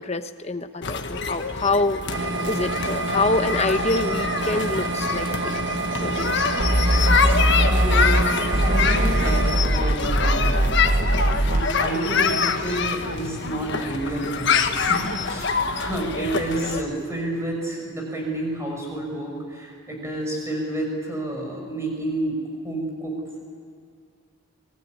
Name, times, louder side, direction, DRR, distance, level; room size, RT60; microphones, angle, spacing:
voice 1, 0.0-6.6, left 2 dB, 30° left, 9 dB, 1.0 m, -26 dB
sound 1, 0.8-16.8, left 5 dB, 55° left, 1.4 m, -26 dB
sound 2, 2.1-9.6, right 3 dB, 55° right, 1.7 m, -28 dB
sound 3, 6.6-8.3 8.5-11.7, right 1 dB, 35° right, 0.9 m, -21 dB
voice 2, 7.5-8.4 8.6-10.8 11.2-14.6 14.9-22.4 22.6-23.4, right 1 dB, 15° right, 0 dB, 5.9 m, -30 dB
24.5 x 19.5 x 9.6 m, 2.2 s
head